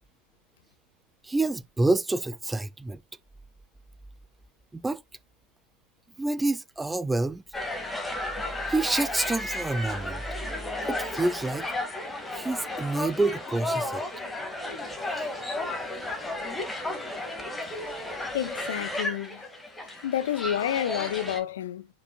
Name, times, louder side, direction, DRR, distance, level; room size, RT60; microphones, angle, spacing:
voice 1, 1.2-3.0 4.7-5.0 6.2-7.4 8.7-10.2 10.9-11.7 12.3-14.0 18.2-18.3, right 2 dB, 10° right, 0.3 m, -27 dB
sound 1, 7.5-21.4, left 2 dB, 10° left, 2.0 m, -33 dB
voice 2, 18.3-19.4 19.9-21.9, left 10 dB, 60° left, 0.9 m, -29 dB
9.8 x 5.3 x 2.3 m
figure-of-eight pair, 90°, 0 cm